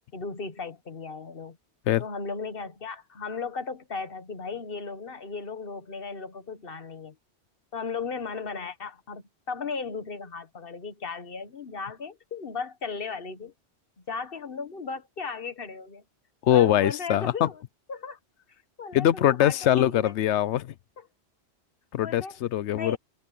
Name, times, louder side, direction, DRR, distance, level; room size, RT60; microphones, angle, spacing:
voice 1, 0.1-1.6 2.0-7.1 7.7-13.5 14.1-16.0 16.5-17.6 17.9-18.2 18.8-20.1 21.0-21.1 22.0-22.3 22.7-23.0, left 5 dB, 55° left, 1.5 m, -36 dB
voice 2, 16.4-17.5 18.9-20.7 21.9-23.0, left 12 dB, 85° left, 0.9 m, -22 dB
omnidirectional pair, 1.1 m